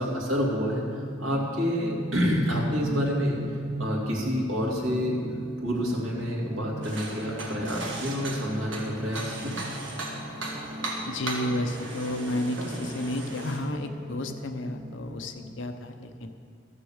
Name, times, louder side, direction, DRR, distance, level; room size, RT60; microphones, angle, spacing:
voice 1, 0.0-3.4 3.8-5.2 5.6-9.6, equal, 90° right, -2 dB, 2.5 m, -28 dB
sound 1, 1.0-15.5, equal, 30° right, 1.0 m, -41 dB
sound 2, 6.8-13.6, right 2 dB, 70° right, 1.9 m, -37 dB
voice 2, 11.1-16.3, left 1 dB, 65° left, 6 dB, 0.9 m, -32 dB
13.0 x 6.7 x 7.2 m, 2.2 s
head